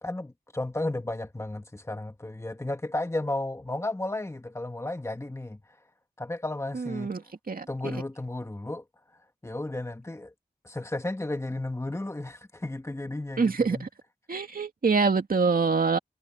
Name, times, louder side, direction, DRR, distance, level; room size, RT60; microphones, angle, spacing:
voice 1, 0.0-5.6 6.2-7.1 7.7-8.8 9.4-10.3 10.6-13.9, left 2 dB, 20° left, 2.0 m, -33 dB
voice 2, 6.7-7.2 7.5-8.0 13.4-13.9 14.3-16.0, right 4 dB, 65° right, 2.2 m, -25 dB
wide cardioid pair, 90°, 16 cm